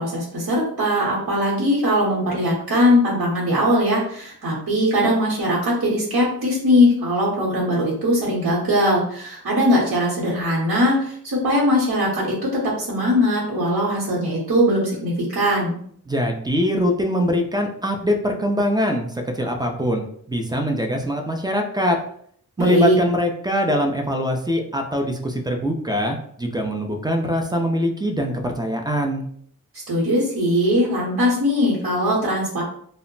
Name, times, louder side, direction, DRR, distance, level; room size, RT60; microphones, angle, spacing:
voice 1, 0.0-15.7 22.6-23.0 29.9-32.6, equal, 65° right, -7 dB, 1.0 m, -20 dB
voice 2, 16.1-22.0 22.6-29.2, equal, 10° right, 3 dB, 0.4 m, -23 dB
2.1 x 2.0 x 3.8 m, 0.63 s
wide cardioid pair, 100°, 37 cm